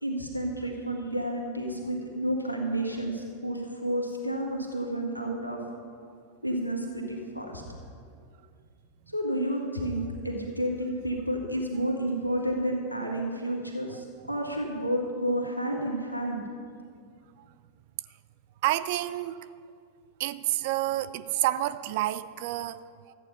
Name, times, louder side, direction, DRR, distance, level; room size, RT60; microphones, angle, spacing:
voice 1, 0.0-5.6 6.4-7.6 9.1-16.4, right 1 dB, 90° left, 0 dB, 1.8 m, -30 dB
voice 2, 18.6-19.4 20.2-23.1, right 15 dB, 50° right, 14 dB, 0.4 m, -29 dB
14.0 x 9.1 x 5.6 m, 2.2 s
figure-of-eight pair, 90°, 0 cm